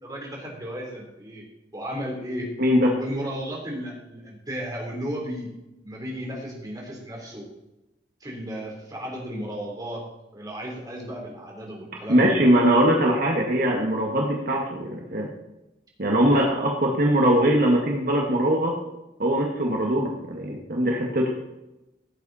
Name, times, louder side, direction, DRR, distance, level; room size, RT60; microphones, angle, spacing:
voice 1, 0.0-1.4 1.7-2.5 3.0-5.5 5.8-7.5 8.2-10.0 10.3-12.5 16.3-16.5, equal, 20° right, -2 dB, 3.7 m, -34 dB
voice 2, 2.6-2.9 12.1-15.3 16.0-18.7 19.2-21.3, right 1 dB, 55° right, -1 dB, 1.7 m, -21 dB
16.0 x 8.3 x 4.2 m, 0.94 s
head